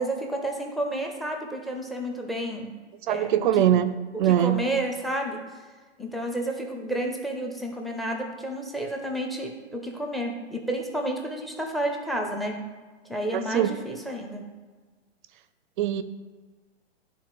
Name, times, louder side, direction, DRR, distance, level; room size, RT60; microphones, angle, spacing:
voice 1, 0.0-2.7 3.1-3.6 4.1-5.4 6.0-12.6 13.1-14.4, right 1 dB, ahead, 1 dB, 0.6 m, -31 dB
voice 2, 3.1-3.9 4.2-4.6 13.3-13.7 15.8-16.0, right 11 dB, 45° right, 12 dB, 0.5 m, -22 dB
11.5 x 3.8 x 3.2 m, 1.3 s
hypercardioid pair, 125°, 34 cm